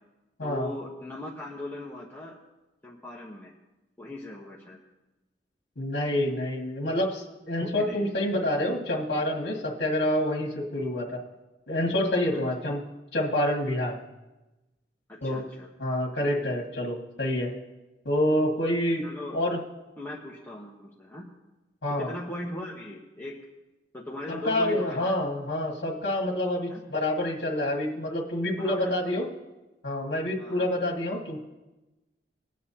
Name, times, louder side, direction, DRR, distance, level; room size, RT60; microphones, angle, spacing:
voice 1, 0.4-2.4 2.8-3.5 4.0-4.8 7.6-8.1 12.3-12.4 15.1-15.7 19.0-19.4 20.0-21.3 22.0-23.4 23.9-25.2 26.7-26.8 28.6-29.1 30.4-30.7, left 1 dB, 10° left, -4 dB, 1.1 m, -39 dB
voice 2, 5.8-11.2 11.7-12.8 13.1-14.0 15.2-15.4 15.8-17.5 18.0-19.1 19.3-19.6 21.8-22.1 24.3-29.3 29.8-31.4, left 1 dB, 70° left, -3 dB, 1.8 m, -27 dB
20.5 x 9.3 x 2.8 m, 1.1 s
head